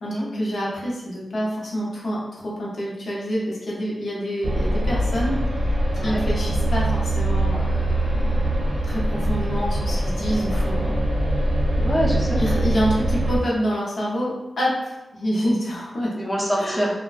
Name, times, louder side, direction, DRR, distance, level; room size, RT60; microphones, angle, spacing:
voice 1, 0.0-5.4 6.0-8.6 8.8-11.0 12.4-16.1 16.6-16.9, equal, 75° left, -5 dB, 0.7 m, -27 dB
sound 1, 4.4-13.4, right 1 dB, 85° right, 0.6 m, -23 dB
voice 2, 11.8-12.4 16.1-16.9, equal, 5° left, -5 dB, 0.5 m, -25 dB
2.4 x 2.1 x 2.4 m, 0.97 s
wide cardioid pair, 110°, 0 cm